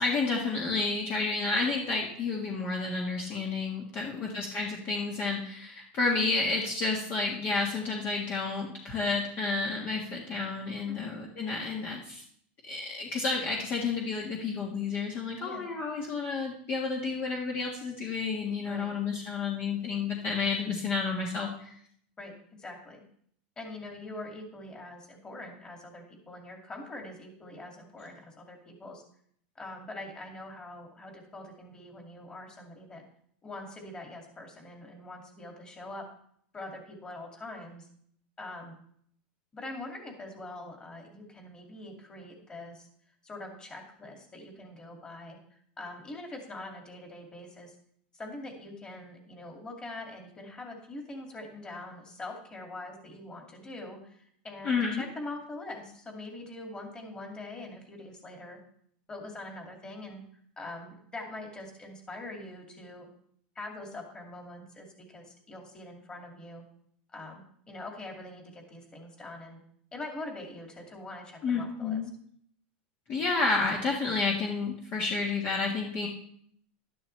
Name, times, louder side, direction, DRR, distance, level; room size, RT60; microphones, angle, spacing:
voice 1, 0.0-12.2 12.7-21.7 54.6-55.0 71.4-72.1 73.1-76.1, left 4 dB, 35° left, -2 dB, 1.6 m, -30 dB
voice 2, 10.9-11.2 15.4-15.7 18.6-19.0 22.2-23.0 23.6-29.0 29.6-33.0 33.4-36.1 36.5-37.9 38.4-38.8 39.5-42.9 43.2-47.7 48.1-58.6 59.1-60.2 60.6-63.1 63.6-66.6 67.1-69.6 69.9-72.0, left 2 dB, 15° left, 2 dB, 2.3 m, -43 dB
12.0 x 11.0 x 3.3 m, 0.64 s
supercardioid pair, 140°, 5 cm